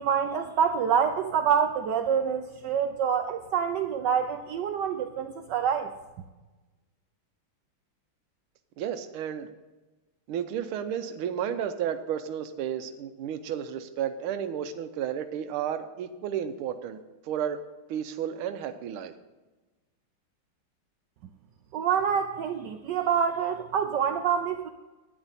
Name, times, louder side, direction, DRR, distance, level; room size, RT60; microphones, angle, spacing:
voice 1, 0.0-5.9 21.7-24.7, right 7 dB, 70° right, 7 dB, 1.1 m, -26 dB
voice 2, 8.8-9.5 10.3-17.0 17.2-17.6 17.9-19.1, right 9 dB, 90° right, 9 dB, 1.5 m, -32 dB
11.5 x 9.8 x 4.0 m, 1.2 s
omnidirectional pair, 2.3 m